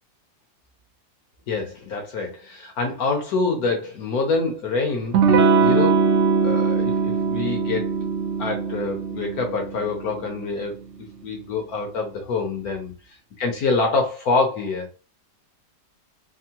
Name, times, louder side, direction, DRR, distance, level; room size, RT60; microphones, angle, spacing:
voice 1, 1.5-6.1 6.4-7.9 8.4-10.8 11.2-12.9 13.4-14.9, left 3 dB, 65° left, 1.1 m, -26 dB
Electric guitar / Strum, 5.1-10.5, right 4 dB, 90° right, 0.6 m, -21 dB
3.5 x 2.0 x 2.8 m
omnidirectional pair, 1.9 m